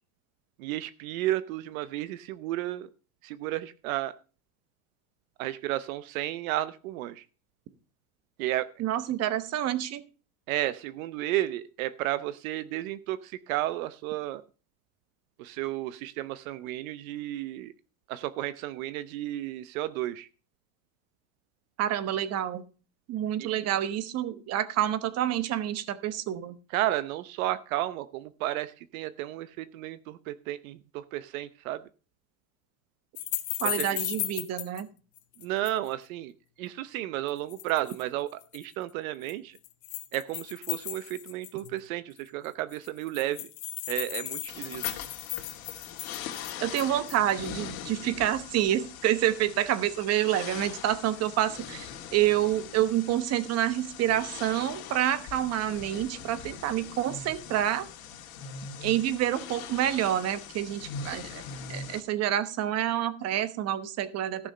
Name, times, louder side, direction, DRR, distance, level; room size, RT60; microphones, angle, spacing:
voice 1, 0.6-2.9 3.2-4.1 5.4-7.2 8.4-8.7 10.5-14.4 15.4-17.7 18.1-20.3 23.4-23.5 26.7-31.8 33.6-33.9 35.4-36.3 36.6-39.6 40.1-43.5 43.9-44.8, right 14 dB, 75° right, 14 dB, 0.8 m, -32 dB
voice 2, 8.8-10.0 21.8-22.6 23.1-26.6 33.6-34.9 46.6-57.9 58.8-61.4 61.7-64.5, right 12 dB, 35° right, 13 dB, 1.1 m, -28 dB
sound 1, 33.2-34.8 35.2-35.9 37.3-38.0 38.4-38.6 39.3-41.8 42.2-42.3 42.4-42.5 42.7-47.3, left 16 dB, 50° left, 1.6 m, -36 dB
sound 2, 44.5-62.0, left 7 dB, 75° left, 2.4 m, -42 dB
14.5 x 6.2 x 5.4 m, 0.36 s
supercardioid pair, 145°, 42 cm